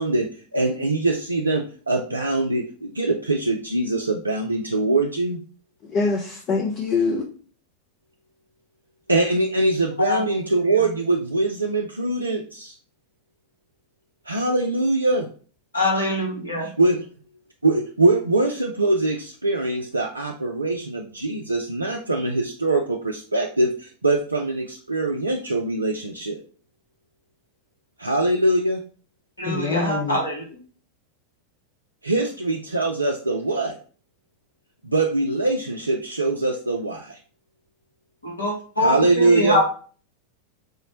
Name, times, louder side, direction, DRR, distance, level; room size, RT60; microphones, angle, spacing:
voice 1, 0.0-5.4 9.1-12.7 14.3-15.3 16.6-17.0 17.6-26.4 28.0-28.8 32.0-33.8 34.8-37.2 38.8-39.6, right 2 dB, 80° right, 0.3 m, -23 dB
voice 2, 5.8-7.2 29.4-30.3, left 4 dB, 35° left, 0.5 m, -24 dB
voice 3, 15.7-16.7 29.4-30.5 38.2-39.6, left 1 dB, 80° left, 0.9 m, -23 dB
4.7 x 2.0 x 2.8 m
figure-of-eight pair, 90°, 0 cm